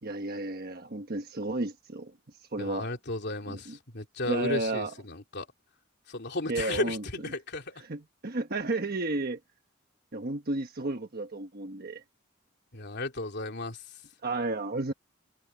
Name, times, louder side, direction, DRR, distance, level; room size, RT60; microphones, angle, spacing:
voice 1, 0.0-2.1 2.5-2.9 3.5-3.8 4.3-4.9 6.5-7.0 7.9-9.4 10.1-12.0 14.2-14.9, right 2 dB, 50° right, 1.3 m, -32 dB
voice 2, 2.6-5.5 6.1-7.8 12.7-14.0, left 2 dB, 60° left, 3.3 m, -34 dB
head